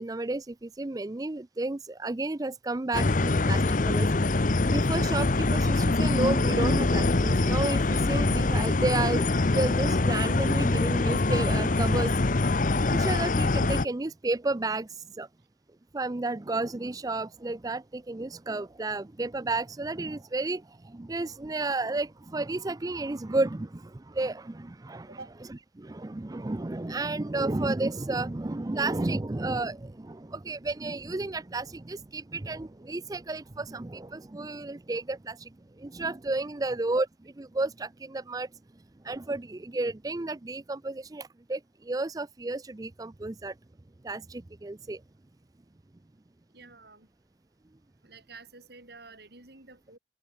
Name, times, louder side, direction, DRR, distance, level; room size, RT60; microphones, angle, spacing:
voice 1, 0.0-4.1 4.7-9.2 9.5-12.1 12.9-15.3 15.9-25.2 25.8-35.5 35.8-38.5 39.0-43.5 44.0-45.0, right 2 dB, 20° right, 0.5 m, -32 dB
sound 1, 2.9-13.8, left 2 dB, 45° left, 0.8 m, -24 dB
voice 2, 46.5-47.1 48.0-50.0, right 3 dB, 60° right, 4.1 m, -49 dB
open air
head